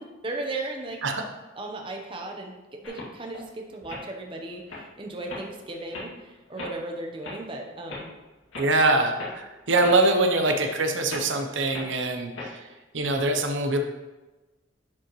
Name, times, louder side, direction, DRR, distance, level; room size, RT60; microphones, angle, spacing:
voice 1, 0.2-1.0 1.6-8.1 10.2-10.4, right 2 dB, 25° right, 1 dB, 0.8 m, -36 dB
sound 1, 2.8-3.4 3.8-4.0 4.5-4.8 5.3-5.5 5.9-6.1 6.6-6.7 7.2-7.4 7.9-8.0 8.5-8.7 9.2-9.3 9.8-10.1 10.4-10.6 11.1-11.2 11.7-11.9 12.4-12.5, left 3 dB, 85° left, 2.2 m, -37 dB
voice 2, 8.6-12.7 12.9-13.8, right 2 dB, 75° right, 5 dB, 0.8 m, -23 dB
10.5 x 5.2 x 3.1 m, 1.1 s
head